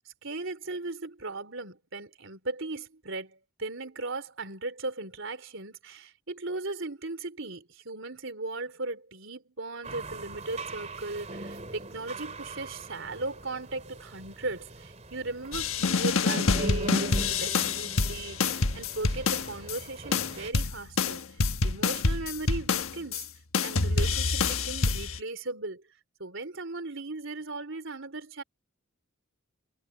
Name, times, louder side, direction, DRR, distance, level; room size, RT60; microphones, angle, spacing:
voice 1, 0.0-23.3 23.6-25.8 26.2-28.4, right 2 dB, 65° right, 3.9 m, -37 dB
sound 1, 9.8-20.5, right 1 dB, 30° right, 3.2 m, -41 dB
sound 2, 15.5-19.8 20.1-23.2 23.5-25.2, left 4 dB, 75° left, 1.3 m, -27 dB
head